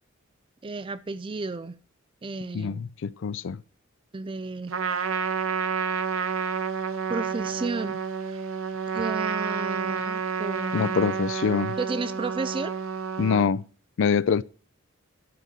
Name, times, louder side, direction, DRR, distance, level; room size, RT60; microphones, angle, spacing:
voice 1, 0.6-1.7 2.2-2.9 4.1-4.7 7.1-8.4 8.9-11.0 11.8-12.7, right 3 dB, 25° right, 0.4 m, -32 dB
voice 2, 2.5-3.6 10.7-11.8 13.2-13.6 14.0-14.4, left 6 dB, 65° left, 0.4 m, -24 dB
Trumpet, 4.7-13.5, right 6 dB, 85° right, 0.9 m, -29 dB
11.5 x 4.3 x 7.5 m
head